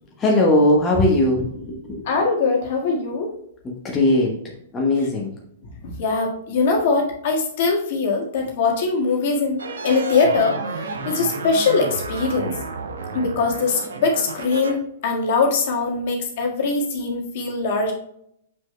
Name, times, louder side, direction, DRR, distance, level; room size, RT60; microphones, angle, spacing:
voice 1, 0.2-2.0 3.6-4.4 4.7-5.3, left 1 dB, 20° left, -2 dB, 1.2 m, -19 dB
voice 2, 2.0-3.4 5.8-9.6 9.8-10.6 11.0-12.5 13.1-17.9, left 4 dB, 50° left, 0 dB, 1.7 m, -21 dB
sound 1, 9.6-14.7, right 4 dB, 65° right, 0.9 m, -31 dB
7.3 x 6.0 x 2.2 m, 0.73 s
figure-of-eight pair, 105°, 0 cm